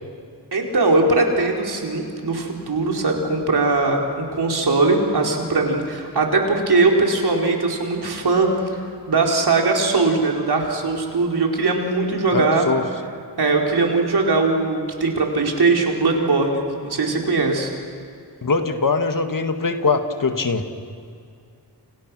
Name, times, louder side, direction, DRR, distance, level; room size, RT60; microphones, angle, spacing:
voice 1, 0.5-8.5 9.1-12.7 13.4-17.7, right 3 dB, 65° right, 0 dB, 4.6 m, -20 dB
voice 2, 12.3-12.8 18.4-20.7, left 4 dB, 50° left, 6 dB, 2.0 m, -22 dB
30.0 x 29.5 x 6.3 m, 2.3 s
wide cardioid pair, 80°, 41 cm